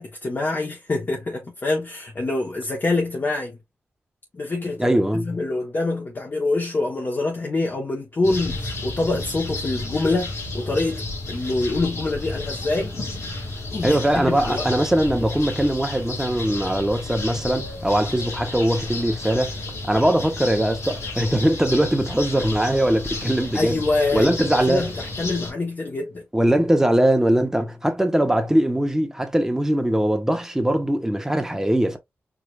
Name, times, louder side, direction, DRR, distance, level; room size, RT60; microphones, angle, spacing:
voice 1, 0.0-3.6 4.3-11.0 11.3-13.0 13.7-14.7 23.5-26.2, left 2 dB, 45° left, 1.2 m, -25 dB
voice 2, 4.8-5.4 13.8-19.5 19.9-23.8 24.1-24.9 26.3-32.0, right 1 dB, 10° right, 1.1 m, -21 dB
sound 1, 8.2-25.5, left 2 dB, 80° left, 2.3 m, -32 dB
4.9 x 2.8 x 2.5 m
wide cardioid pair, 80°, 5 cm